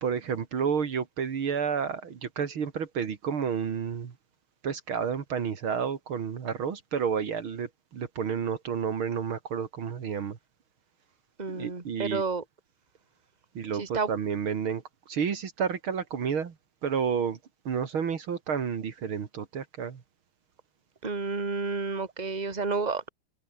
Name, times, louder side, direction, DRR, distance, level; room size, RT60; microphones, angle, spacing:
voice 1, 0.0-4.1 4.6-10.4 11.5-12.2 13.5-16.5 16.8-17.4 17.6-20.0, right 6 dB, 75° right, 2.9 m, -30 dB
voice 2, 11.4-12.4 13.8-14.1 21.0-23.1, right 4 dB, 20° right, 2.5 m, -30 dB
omnidirectional pair, 2.3 m